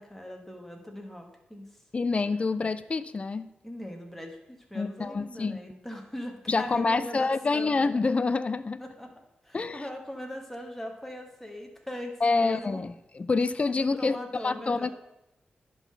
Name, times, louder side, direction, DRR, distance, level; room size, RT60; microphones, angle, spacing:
voice 1, 0.0-1.7 3.6-7.9 8.8-9.1 9.4-12.8 13.7-14.9, equal, 5° left, 2 dB, 1.6 m, -40 dB
voice 2, 1.9-3.5 4.7-5.6 6.5-8.8 9.5-9.8 12.2-14.2 14.4-14.9, left 3 dB, 40° left, 14 dB, 0.5 m, -27 dB
10.5 x 4.0 x 5.8 m, 0.87 s
cardioid pair, 70°, 3 cm